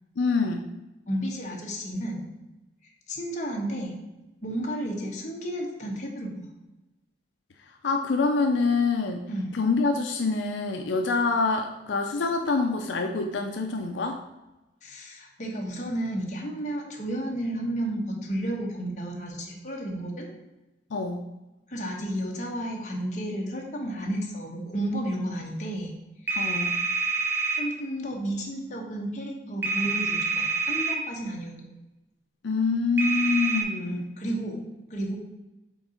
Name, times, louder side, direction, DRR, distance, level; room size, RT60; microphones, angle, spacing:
voice 1, 0.2-0.7 7.8-14.2 20.9-21.3 26.3-26.8 32.4-34.1, left 4 dB, 80° left, 4 dB, 0.5 m, -26 dB
voice 2, 1.1-2.3 3.1-3.9 4.4-6.5 9.3-9.5 14.8-20.3 21.7-25.9 26.2-26.5 27.6-31.7 33.9-34.6 34.9-35.2, right 1 dB, 40° left, -1 dB, 1.1 m, -32 dB
sound 1, 26.3-27.6 29.6-30.9 33.0-33.6, right 4 dB, 10° right, 0.9 m, -27 dB
4.6 x 3.8 x 5.6 m, 0.99 s
head